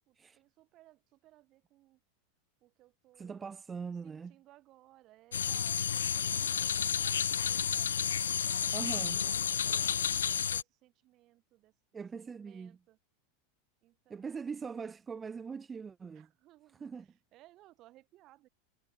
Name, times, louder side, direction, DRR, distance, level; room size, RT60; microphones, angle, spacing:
voice 1, 0.1-2.0 2.6-3.5 4.0-8.1 8.5-8.9 9.3-11.7 12.2-13.0 13.8-14.3 16.1-16.8 17.3-18.5, right 16 dB, 45° right, 1.8 m, -62 dB
voice 2, 3.1-4.4 8.7-9.3 11.9-12.8 14.1-16.3 16.7-17.1, right 5 dB, 20° right, 1.0 m, -42 dB
sound 1, 5.3-10.6, left 8 dB, 80° left, 0.4 m, -31 dB
hypercardioid pair, 90°, 0 cm